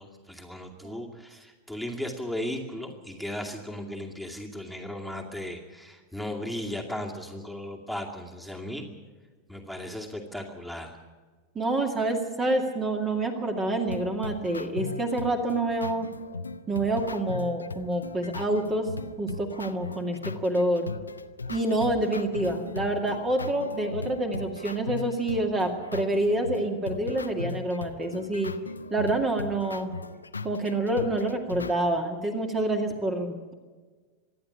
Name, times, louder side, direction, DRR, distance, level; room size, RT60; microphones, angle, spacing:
voice 1, 0.0-8.9 9.5-11.0, left 1 dB, ahead, 2 dB, 2.4 m, -36 dB
voice 2, 11.6-16.1 16.7-18.9 19.2-20.9 21.5-28.5 28.9-29.9 30.4-33.5, right 1 dB, 20° right, 3 dB, 2.3 m, -27 dB
sound 1, 13.9-31.7, left 3 dB, 80° left, 0.9 m, -38 dB
26.0 x 11.0 x 9.8 m, 1.4 s
figure-of-eight pair, 90°, 0 cm